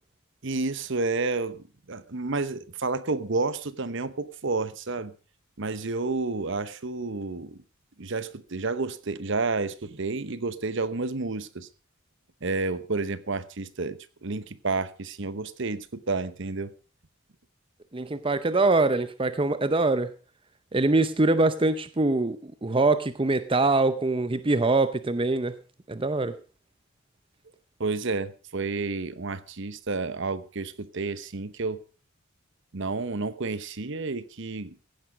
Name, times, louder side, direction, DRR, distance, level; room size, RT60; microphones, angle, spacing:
voice 1, 0.4-5.1 5.6-7.6 8.0-11.7 12.4-16.7 27.8-31.8 32.7-34.8, right 3 dB, 60° right, 15 dB, 1.0 m, -30 dB
voice 2, 17.9-20.1 20.7-25.5 25.9-26.3, right 2 dB, 25° right, 12 dB, 0.7 m, -23 dB
16.0 x 10.5 x 5.0 m, 0.36 s
head